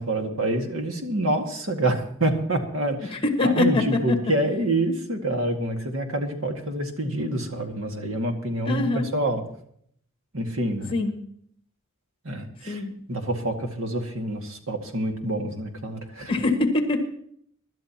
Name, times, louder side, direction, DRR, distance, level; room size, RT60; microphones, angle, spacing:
voice 1, 0.0-9.4 10.3-10.9 12.2-12.8 13.1-16.3, right 1 dB, 70° right, 4 dB, 1.9 m, -27 dB
voice 2, 3.1-4.2 8.7-9.1 10.9-11.1 12.7-12.9 16.3-17.1, left 3 dB, 25° left, 4 dB, 1.6 m, -23 dB
24.5 x 12.0 x 2.9 m, 0.65 s
head